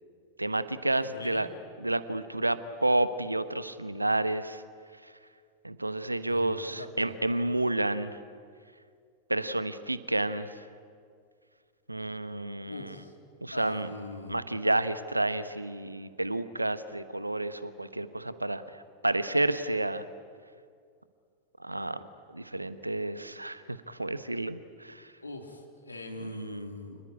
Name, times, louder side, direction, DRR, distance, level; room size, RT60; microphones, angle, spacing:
voice 1, 0.4-1.5 1.8-4.6 5.6-8.2 9.3-10.5 11.9-12.9 13.4-13.9 14.3-18.6 19.0-20.0 21.6-22.0 22.3-25.1 26.2-26.7, right 2 dB, 85° right, 13 dB, 1.1 m, -30 dB
voice 2, 1.0-1.5 6.3-7.1 12.7-13.1 13.5-14.4 25.2-27.0, left 2 dB, 80° left, 4 dB, 3.1 m, -42 dB
28.0 x 19.5 x 9.8 m, 2.2 s
figure-of-eight pair, 90°, 0 cm